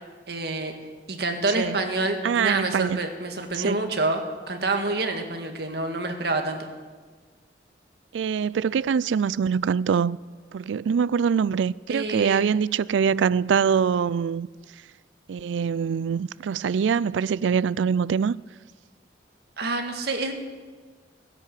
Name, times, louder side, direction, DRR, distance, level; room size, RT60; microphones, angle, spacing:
voice 1, 0.3-0.7 1.1-6.7 11.9-12.5 19.6-20.3, right 2 dB, 60° right, 1.7 m, -27 dB
voice 2, 2.2-3.1 3.6-3.9 8.1-10.2 10.5-14.5 15.3-18.4, right 6 dB, 85° right, 0.3 m, -24 dB
16.5 x 10.5 x 7.6 m
head